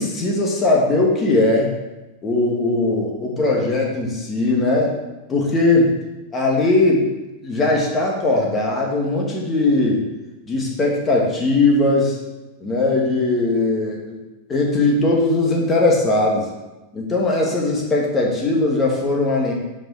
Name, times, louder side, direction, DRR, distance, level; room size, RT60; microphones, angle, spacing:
voice 1, 0.0-1.7 2.2-4.9 5.3-5.9 6.3-7.1 7.4-10.0 10.5-12.2 12.6-14.2 14.5-16.5 16.9-19.5, left 2 dB, 25° left, -1 dB, 2.0 m, -19 dB
5.4 x 5.2 x 4.9 m, 1.0 s
hypercardioid pair, 95°, 0 cm